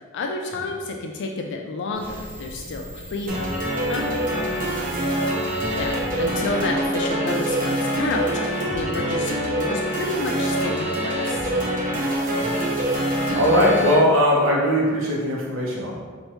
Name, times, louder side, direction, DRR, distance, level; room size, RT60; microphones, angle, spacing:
voice 1, 0.0-4.9 5.8-11.5, left 3 dB, 60° left, 2 dB, 0.3 m, -30 dB
sound 1, 1.9-7.4, equal, 10° right, 0.5 m, -40 dB
sound 2, 3.3-13.9, right 1 dB, 40° right, 0.8 m, -25 dB
voice 2, 12.3-16.0, equal, 70° right, -4 dB, 1.0 m, -21 dB
4.4 x 2.6 x 3.1 m, 1.5 s
head